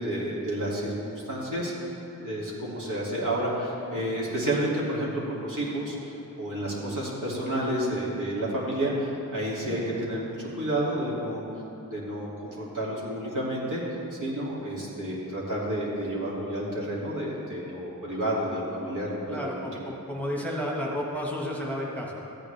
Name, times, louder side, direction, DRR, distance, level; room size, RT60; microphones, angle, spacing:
voice 1, 0.0-11.4 11.9-13.8 14.1-19.8, right 1 dB, 65° right, -7 dB, 2.7 m, -30 dB
voice 2, 19.3-22.2, equal, 5° left, -3 dB, 1.5 m, -32 dB
14.0 x 9.1 x 3.4 m, 2.8 s
wide cardioid pair, 55°, 34 cm